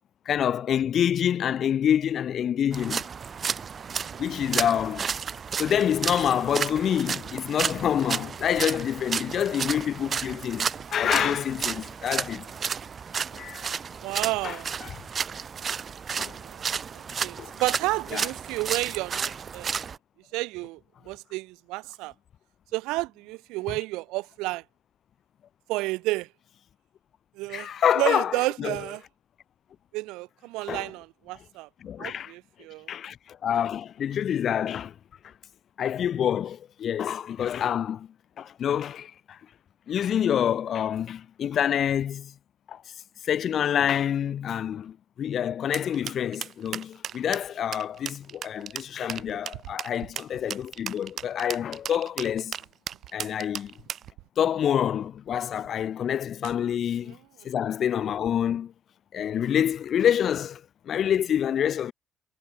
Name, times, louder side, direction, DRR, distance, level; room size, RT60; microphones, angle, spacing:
voice 1, 0.3-3.0 4.2-5.2 5.6-12.5 13.3-13.6 14.4-14.6 16.2-16.4 17.4-17.5 18.1-18.3 27.5-28.8 30.7-30.9 31.8-32.3 32.9-34.9 35.2-35.3 35.8-38.1 38.4-39.4 39.9-42.3 42.7-42.8 43.2-52.5 53.1-53.7 54.4-57.2 57.4-58.7 59.1-61.9, left 9 dB, 60° left, 0.7 m, -27 dB
sound 1, 2.7-20.0, right 6 dB, 45° right, 1.7 m, -32 dB
voice 2, 3.9-4.2 11.0-11.4 14.0-14.7 16.4-19.9 20.3-20.8 21.0-22.1 22.7-24.6 25.7-26.3 27.3-27.7 28.0-29.0 29.9-31.7 32.0-32.9 57.0-57.2, right 21 dB, 85° right, 1.2 m, -31 dB
sound 2, 45.7-54.1, right 9 dB, 60° right, 1.5 m, -36 dB
supercardioid pair, 75°, 0 cm